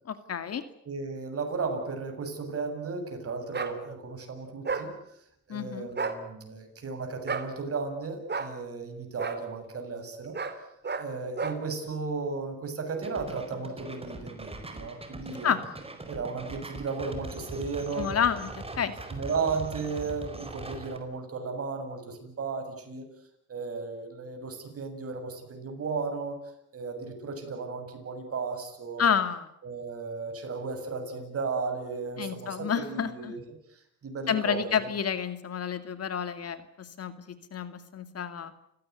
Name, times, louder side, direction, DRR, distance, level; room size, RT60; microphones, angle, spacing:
voice 1, 0.1-0.6 5.5-5.9 15.4-15.6 17.9-18.5 18.8-18.9 29.0-29.5 32.2-33.3 34.3-38.5, left 7 dB, 55° left, 11 dB, 2.4 m, -29 dB
voice 2, 0.8-4.9 5.5-10.4 10.9-15.5 16.1-18.1 19.1-23.1 23.5-26.4 26.7-29.0 29.6-33.4 33.7-34.9, right 4 dB, 50° right, 6 dB, 7.6 m, -35 dB
sound 1, 3.5-3.7 4.6-4.9 5.9-6.2 7.3-7.5 8.3-8.5 9.2-9.4 10.3-10.6 10.8-11.1 11.4-11.6, right 4 dB, 35° right, 3.3 m, -31 dB
sound 2, 13.0-21.0, right 2 dB, 20° right, 4.8 m, -41 dB
29.5 x 17.0 x 9.6 m, 0.75 s
cardioid pair, 90°, 30 cm